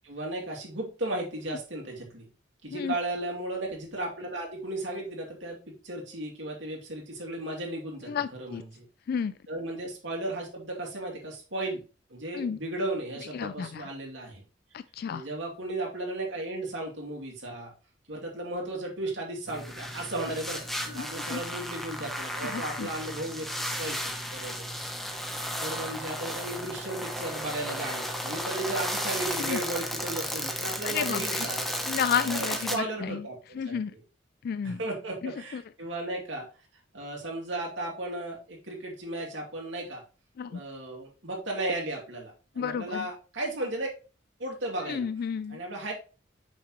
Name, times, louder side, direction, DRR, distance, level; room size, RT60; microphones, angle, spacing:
voice 1, 0.0-2.2 2.6-8.8 9.5-11.8 12.1-14.4 15.1-17.7 18.1-24.8 25.2-31.7 32.2-32.4 32.7-33.4 33.6-34.0 34.6-36.5 36.9-40.0 40.5-43.9 44.4-45.1 45.5-45.9, right 1 dB, 80° right, 2.6 m, -35 dB
voice 2, 8.1-8.6 9.1-9.3 12.3-12.6 13.3-13.9 14.7-15.2 20.9-21.4 22.4-22.9 29.4-29.6 30.8-31.5 31.9-33.2 33.5-33.9 34.4-34.8 35.2-35.6 40.4-40.6 42.6-43.1 44.8-45.6, left 7 dB, 55° left, 0.3 m, -32 dB
sound 1, 19.5-32.8, equal, ahead, 0.9 m, -34 dB
6.2 x 5.9 x 3.1 m
head